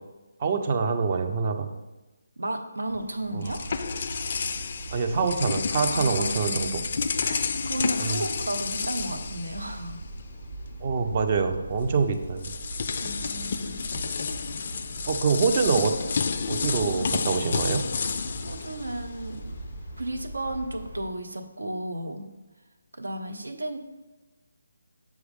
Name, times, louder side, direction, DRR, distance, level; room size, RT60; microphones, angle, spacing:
voice 1, 0.4-1.7 3.3-3.5 4.9-6.8 8.0-8.2 10.8-12.5 15.1-16.0 16.5-17.8, right 5 dB, 35° right, 6 dB, 0.6 m, -25 dB
voice 2, 2.4-3.6 5.9-6.9 7.2-10.0 13.0-13.9 18.4-19.5 20.0-22.3 22.9-23.8, right 1 dB, 80° right, 6 dB, 0.7 m, -33 dB
sound 1, 2.9-10.2 10.5-10.7 11.8-11.9 12.4-19.5, left 5 dB, 45° left, 0.3 m, -31 dB
sound 2, 3.4-21.1, right 2 dB, 65° right, 1.7 m, -40 dB
6.3 x 4.7 x 3.5 m, 1.1 s
figure-of-eight pair, 150°, 0 cm